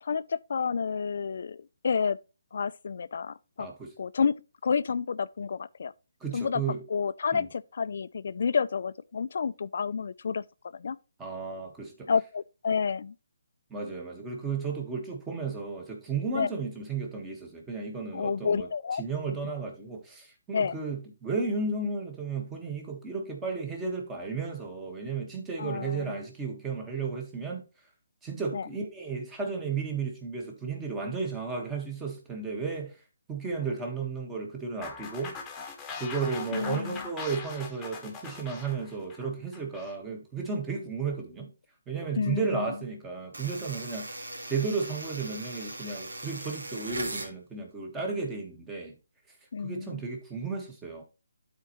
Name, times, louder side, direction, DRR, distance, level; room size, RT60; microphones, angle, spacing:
voice 1, 0.0-2.2 2.5-3.7 4.0-4.4 4.6-5.9 6.3-6.6 6.9-10.4 10.7-11.0 12.1-13.1 16.3-16.5 18.1-19.5 20.5-20.7 25.6-26.1 28.5-28.7 36.5-37.1 42.2-42.8 49.5-50.0, left 6 dB, 60° left, 0.4 m, -30 dB
voice 2, 3.6-3.9 6.2-6.8 7.3-7.5 11.2-12.1 13.7-18.7 19.0-27.7 28.2-33.0 33.3-35.4 36.0-41.5 41.9-48.9 49.6-51.0, right 4 dB, 10° right, 1.5 m, -34 dB
sound 1, 34.8-40.0, left 5 dB, 10° left, 1.3 m, -41 dB
sound 2, 43.3-47.3, right 2 dB, 90° right, 1.9 m, -39 dB
12.0 x 4.4 x 3.1 m
hypercardioid pair, 155°, 0 cm